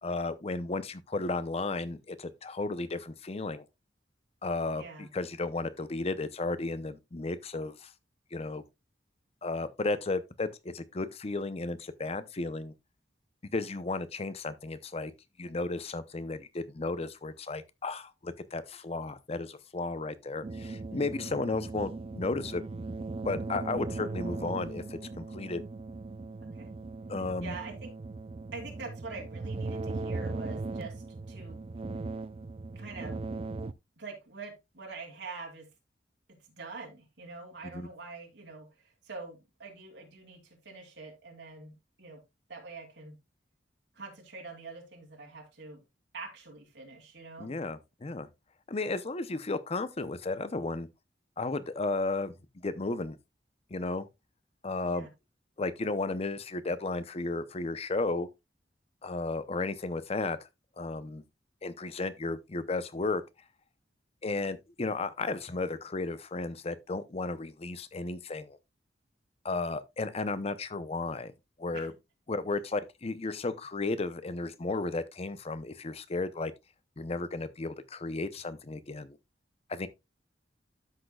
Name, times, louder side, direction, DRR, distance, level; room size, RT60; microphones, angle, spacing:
voice 1, 0.0-3.6 4.4-7.9 8.3-8.6 9.4-12.7 13.5-15.1 15.4-22.6 23.2-25.6 27.1-27.5 37.7-37.9 47.4-48.3 48.7-50.9 51.4-52.3 52.6-53.2 53.7-54.1 54.6-55.1 55.6-58.3 59.0-60.4 60.8-61.2 61.6-63.2 64.2-68.6 69.4-71.3 71.6-71.9 72.3-76.5 77.0-79.2 79.7-79.9, left 3 dB, 35° left, 0.6 m, -34 dB
voice 2, 4.8-5.1 26.4-26.7 27.4-27.9 28.5-31.6 32.7-33.2 34.0-35.7 36.3-42.2 42.5-43.2 43.9-45.8 46.1-47.6 54.8-55.1 71.7-71.9, right 3 dB, 75° right, 2.9 m, -45 dB
sound 1, 20.4-33.7, right 3 dB, 30° right, 0.4 m, -38 dB
12.5 x 6.4 x 2.3 m
head